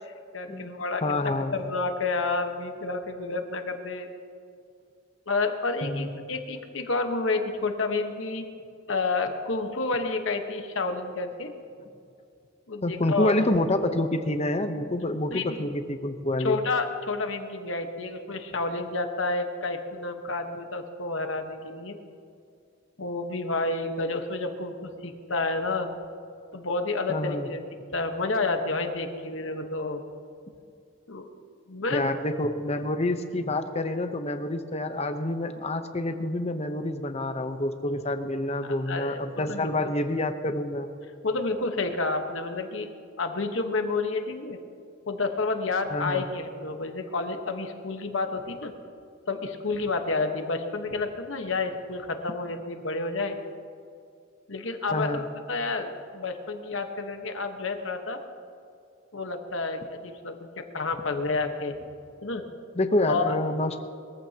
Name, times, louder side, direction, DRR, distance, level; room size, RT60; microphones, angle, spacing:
voice 1, 0.3-1.2 1.5-4.1 5.3-8.4 8.9-11.5 12.7-13.3 15.3-15.6 16.4-21.9 23.0-25.9 26.5-27.6 27.9-30.0 31.1-31.3 31.7-32.1 38.6-39.2 39.5-39.7 41.2-42.9 43.2-44.6 45.1-48.7 49.3-53.4 54.5-58.2 59.1-61.7 62.2-62.4 63.1-63.3, left 3 dB, 70° left, 5 dB, 1.2 m, -30 dB
voice 2, 1.0-1.6 5.8-6.2 12.8-16.6 27.1-27.5 31.9-40.9 45.9-46.2 54.9-55.2 62.7-63.8, left 1 dB, 30° left, 8 dB, 0.9 m, -27 dB
22.0 x 15.0 x 2.9 m, 2.4 s
head